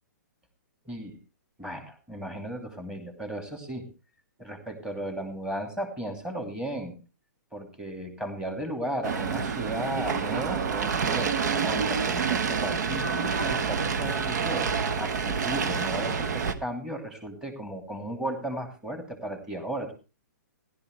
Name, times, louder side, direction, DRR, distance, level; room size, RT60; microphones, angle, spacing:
voice 1, 0.8-1.2 1.6-3.8 4.4-7.0 7.5-11.4 11.6-19.9, right 1 dB, 5° right, 4 dB, 2.7 m, -35 dB
sound 1, 9.0-16.5, right 6 dB, 65° right, 1.3 m, -28 dB
15.0 x 12.0 x 3.2 m, 0.31 s
hypercardioid pair, 140°, 10 cm